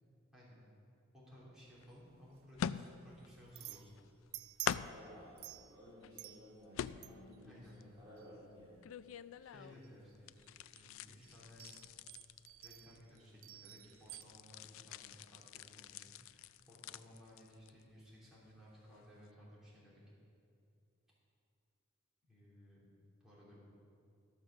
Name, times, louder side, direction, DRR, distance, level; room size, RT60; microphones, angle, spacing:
voice 1, 0.3-0.6 1.1-4.0 7.4-7.8 9.4-10.3 10.7-11.7 12.6-20.0 22.3-22.8 23.2-23.7, equal, 5° right, -8 dB, 3.1 m, -58 dB
sound 1, 1.7-14.2, right 16 dB, 85° right, 0.4 m, -54 dB
sound 2, 1.8-1.9 2.6-3.3 3.6-4.3 4.6-5.2 5.7-6.3 6.7-7.4 7.8-9.9 10.2-13.4 13.7-17.9 18.2-18.5 19.0-19.1, left 8 dB, 75° left, 0.3 m, -45 dB
voice 2, 4.9-5.4 5.7-8.8, equal, 20° right, -9 dB, 2.6 m, -56 dB
14.0 x 6.4 x 6.2 m, 2.5 s
head